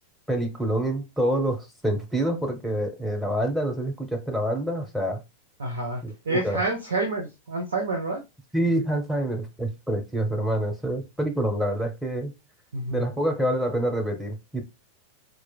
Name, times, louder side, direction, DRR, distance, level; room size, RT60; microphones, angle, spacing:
voice 1, 0.3-5.2 6.0-6.6 8.5-12.3 12.9-14.6, right 1 dB, ahead, 0.9 m, -27 dB
voice 2, 5.6-8.2 12.7-13.0, right 2 dB, 70° right, 0.8 m, -28 dB
4.2 x 2.5 x 2.2 m
figure-of-eight pair, 90°, 0 cm